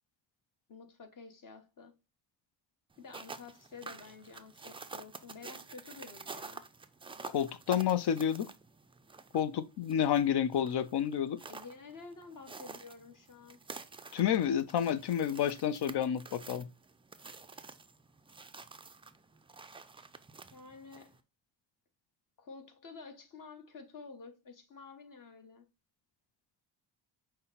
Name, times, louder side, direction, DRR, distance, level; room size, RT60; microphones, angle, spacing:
voice 1, 0.7-1.9 3.0-6.6 11.5-13.6 20.5-21.2 22.4-25.6, left 4 dB, 45° left, 1.2 m, -50 dB
sound 1, 2.9-21.2, right 4 dB, 15° right, 0.3 m, -49 dB
voice 2, 7.3-8.5 9.3-11.4 14.1-16.7, left 9 dB, 60° left, 0.6 m, -30 dB
5.5 x 2.2 x 4.0 m
cardioid pair, 70°, 46 cm